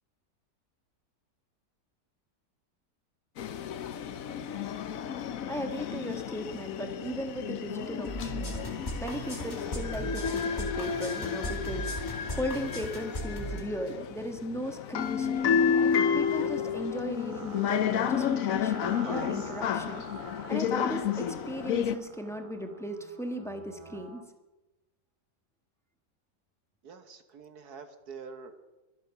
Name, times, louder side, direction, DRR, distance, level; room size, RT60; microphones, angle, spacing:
sound 1, 3.4-22.0, left 7 dB, 60° left, 1.1 m, -31 dB
voice 1, 5.5-15.7 16.1-20.0 20.5-24.2, equal, ahead, 5 dB, 1.3 m, -37 dB
sound 2, 8.0-13.6, equal, 25° left, 2.6 m, -37 dB
sound 3, 15.4-24.3, right 3 dB, 25° right, 0.8 m, -47 dB
voice 2, 26.8-28.7, right 5 dB, 65° right, 8 dB, 1.7 m, -46 dB
23.5 x 8.3 x 6.0 m, 1.1 s
omnidirectional pair, 1.8 m